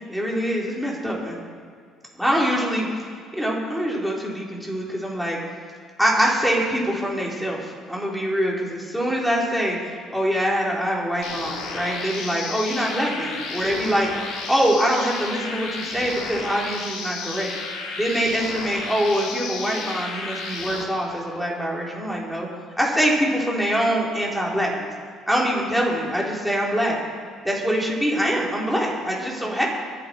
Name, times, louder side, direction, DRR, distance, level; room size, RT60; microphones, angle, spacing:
voice 1, 0.1-1.4 2.2-2.9 3.3-5.4 6.0-17.5 18.0-22.5 22.8-24.9 25.3-27.0 27.4-29.7, equal, ahead, -4 dB, 4.7 m, -24 dB
sound 1, 11.2-20.8, left 4 dB, 80° left, 2.9 m, -33 dB
24.0 x 10.0 x 4.9 m, 2.1 s
cardioid pair, 100°, 0 cm